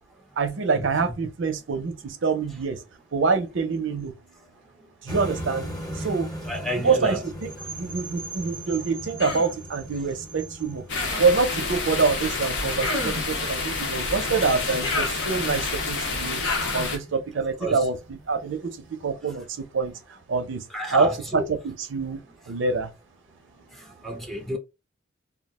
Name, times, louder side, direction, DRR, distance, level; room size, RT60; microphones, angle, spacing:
voice 1, 0.4-2.8 3.1-4.1 5.0-5.7 6.0-6.3 6.8-10.8 11.2-18.8 19.0-19.9 20.3-20.6 20.9-22.2 22.5-22.9, right 4 dB, 70° right, 0.5 m, -26 dB
sound 1, 5.1-19.0, equal, 20° left, 0.8 m, -40 dB
voice 2, 6.5-7.2 17.6-17.8 20.7-21.4 24.0-24.6, right 1 dB, ahead, 0.5 m, -29 dB
Human voice, 9.2-9.6 10.9-11.4 12.8-13.4 14.8-15.7 16.4-17.0, left 3 dB, 85° left, 1.1 m, -31 dB
sound 2, 10.9-17.0, left 3 dB, 65° left, 0.7 m, -29 dB
2.4 x 2.0 x 3.5 m
head